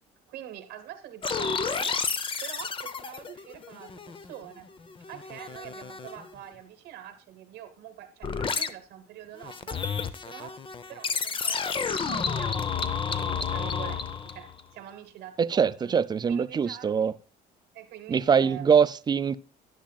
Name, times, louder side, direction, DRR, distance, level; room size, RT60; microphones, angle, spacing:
voice 1, 0.3-4.7 5.1-10.6 10.9-17.1 17.7-18.7, right 11 dB, 85° right, 1.3 m, -45 dB
sound 1, 1.2-4.5 4.8-6.3 8.2-8.7 9.4-14.6, left 5 dB, 30° left, 0.7 m, -31 dB
voice 2, 15.4-17.1 18.1-19.4, right 6 dB, 25° right, 0.4 m, -23 dB
10.0 x 10.0 x 2.3 m
cardioid pair, 110°, 17 cm